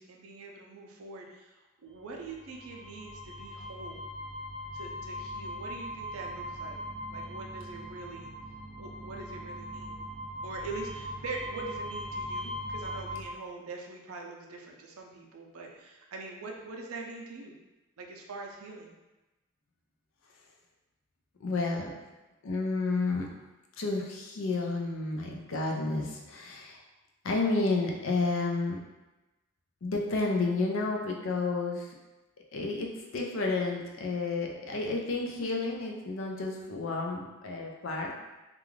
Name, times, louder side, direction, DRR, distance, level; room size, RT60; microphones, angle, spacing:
voice 1, 0.0-4.0 4.7-6.8 7.1-8.3 8.8-10.0 10.4-17.5 18.0-18.9, right 3 dB, 80° right, 1 dB, 0.5 m, -43 dB
sound 1, 2.2-13.3, equal, 5° left, 0.6 m, -40 dB
voice 2, 21.4-21.9 22.4-23.3 23.8-26.8 27.2-28.8 29.8-31.9 32.5-38.1, left 3 dB, 65° left, 0 dB, 0.5 m, -31 dB
2.4 x 2.3 x 3.1 m, 1.1 s
head